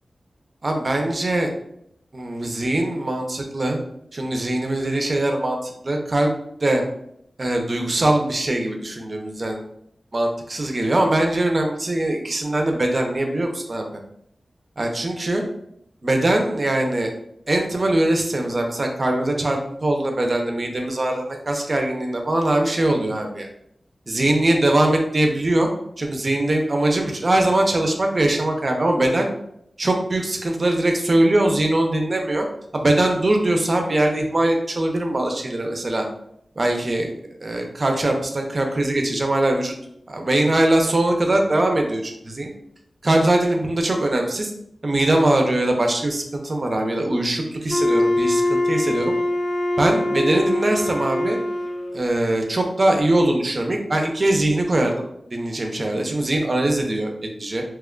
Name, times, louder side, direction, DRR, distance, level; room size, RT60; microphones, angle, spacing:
voice 1, 0.6-1.5 2.1-3.8 4.1-6.3 6.6-6.8 7.4-9.6 10.1-13.8 14.8-15.4 16.0-17.1 17.5-23.5 24.1-25.7 26.0-29.3 29.8-32.5 32.7-36.1 36.6-37.1 37.4-39.7 40.1-42.5 43.0-44.5 44.8-49.1 49.8-51.4 51.9-55.0 55.3-57.6, right 1 dB, 45° right, 3 dB, 0.6 m, -21 dB
Wind instrument woodwind instrument, 47.7-52.0, left 1 dB, 55° left, 0.6 m, -22 dB
2.8 x 2.2 x 3.7 m, 0.73 s
wide cardioid pair, 80°, 0 cm